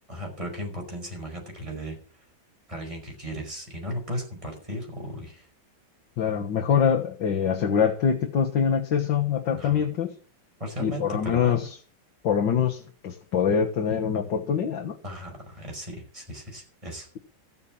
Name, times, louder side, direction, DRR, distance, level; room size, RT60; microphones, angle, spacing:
voice 1, 0.1-2.0 2.7-5.5 9.5-9.9 10.6-11.6 15.0-17.1, equal, 15° right, 1 dB, 5.3 m, -36 dB
voice 2, 6.2-10.1 10.8-11.7 12.2-15.0, left 7 dB, 90° left, 2 dB, 2.1 m, -24 dB
14.0 x 8.5 x 7.4 m, 0.42 s
omnidirectional pair, 1.9 m